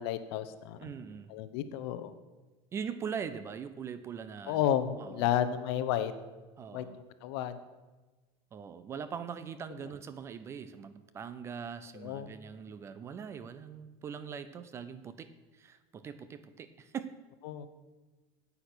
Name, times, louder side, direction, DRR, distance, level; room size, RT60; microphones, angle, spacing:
voice 1, 0.0-0.9 1.3-2.1 4.5-6.1 6.7-6.8 7.2-7.6 11.9-12.3 17.4-17.7, left 10 dB, 65° left, 12 dB, 0.9 m, -32 dB
voice 2, 0.8-1.3 2.7-4.6 5.0-5.3 6.6-7.0 8.5-15.3 15.6-17.1, right 7 dB, 20° right, 13 dB, 0.4 m, -41 dB
9.9 x 8.6 x 6.1 m, 1.2 s
cardioid pair, 175°, 14 cm